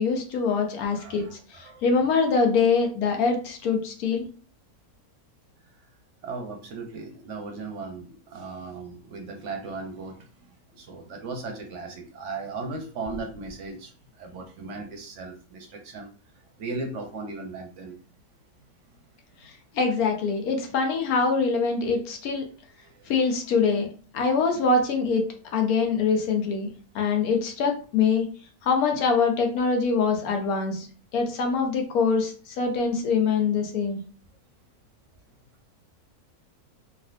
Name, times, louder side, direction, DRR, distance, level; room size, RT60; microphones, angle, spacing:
voice 1, 0.0-1.3 1.8-4.3 19.8-22.4 23.1-23.9 24.1-25.2 25.5-26.7 26.9-28.2 28.6-30.9 31.1-34.0, left 5 dB, 75° left, 3 dB, 1.1 m, -24 dB
voice 2, 1.0-1.8 6.2-16.1 16.6-18.0 22.8-23.1, right 3 dB, 65° right, 3 dB, 0.8 m, -37 dB
3.3 x 2.4 x 2.4 m, 0.39 s
omnidirectional pair, 1.6 m